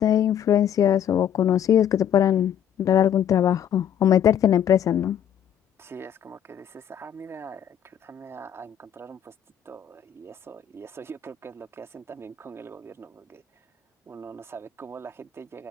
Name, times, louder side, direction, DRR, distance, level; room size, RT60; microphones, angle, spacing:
voice 1, 0.0-5.2, left 10 dB, 55° left, 0.4 m, -20 dB
voice 2, 5.8-9.3 9.6-13.7 14.1-15.7, right 5 dB, 40° right, 2.4 m, -42 dB
cardioid pair, 80°, 7 cm